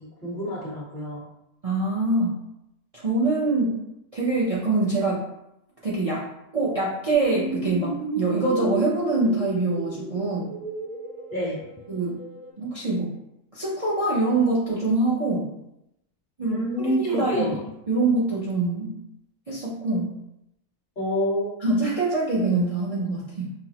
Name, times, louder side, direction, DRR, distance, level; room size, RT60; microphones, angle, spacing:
voice 1, 0.2-1.2 11.3-11.6 16.4-17.6 21.0-21.5, equal, 30° left, -6 dB, 1.4 m, -27 dB
voice 2, 1.6-2.4 2.9-3.7 4.1-5.3 5.8-6.3 6.5-10.5 11.9-12.2 12.6-13.1 13.5-15.5 16.4-17.5 17.9-18.9 19.5-20.1 21.6-23.5, right 2 dB, 65° right, -7 dB, 0.3 m, -24 dB
sound 1, 7.1-12.5, right 2 dB, 45° right, 0.7 m, -33 dB
6.0 x 2.0 x 2.9 m, 0.85 s
omnidirectional pair, 1.7 m